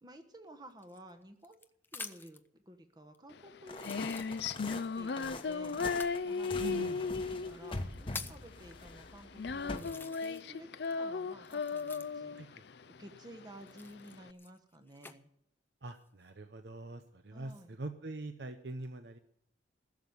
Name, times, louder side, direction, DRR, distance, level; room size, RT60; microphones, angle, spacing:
voice 1, 0.0-1.6 1.9-4.4 4.7-5.8 6.2-6.6 6.9-12.4 12.9-15.3 17.3-17.8, equal, 20° right, 7 dB, 1.2 m, -53 dB
sound 1, 0.8-2.5 3.1-3.2 3.7-4.8 5.9-6.2 7.1-7.2 7.7-8.5 9.2-9.3 9.7-10.6 10.8-12.4 13.6-15.2 15.8-16.3, left 4 dB, 10° left, 0.5 m, -48 dB
Female singing, 3.3-14.3, left 5 dB, 60° left, 0.5 m, -36 dB
sound 2, 3.7-9.9, left 2 dB, 30° left, 1.1 m, -44 dB
voice 2, 6.6-7.0 12.3-12.6 15.8-19.2, right 2 dB, 65° right, 8 dB, 0.8 m, -43 dB
15.5 x 7.2 x 9.5 m, 0.71 s
head